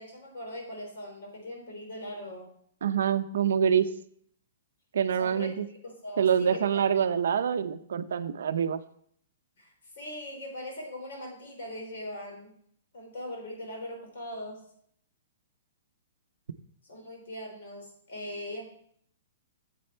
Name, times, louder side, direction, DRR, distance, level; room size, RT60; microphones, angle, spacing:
voice 1, 0.0-2.5 5.2-5.5 5.8-6.8 9.6-12.5 12.9-14.7 16.8-18.8, left 1 dB, 55° left, 1 dB, 3.7 m, -40 dB
voice 2, 2.8-3.9 4.9-5.7 6.2-8.8, right 8 dB, 65° right, 11 dB, 0.6 m, -26 dB
7.9 x 7.6 x 4.3 m, 0.65 s
hypercardioid pair, 180°, 0 cm